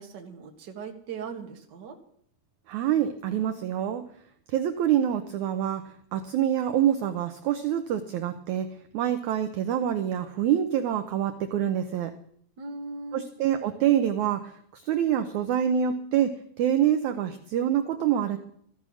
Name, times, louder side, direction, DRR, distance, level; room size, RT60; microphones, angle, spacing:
voice 1, 0.0-2.0 12.6-13.3, right 4 dB, 45° right, 3 dB, 1.5 m, -39 dB
voice 2, 2.7-4.0 4.5-5.8 6.1-8.7 8.9-12.1 13.1-16.3 16.6-18.4, right 10 dB, 80° right, 9 dB, 1.7 m, -26 dB
14.5 x 13.0 x 6.3 m, 0.65 s
omnidirectional pair, 4.3 m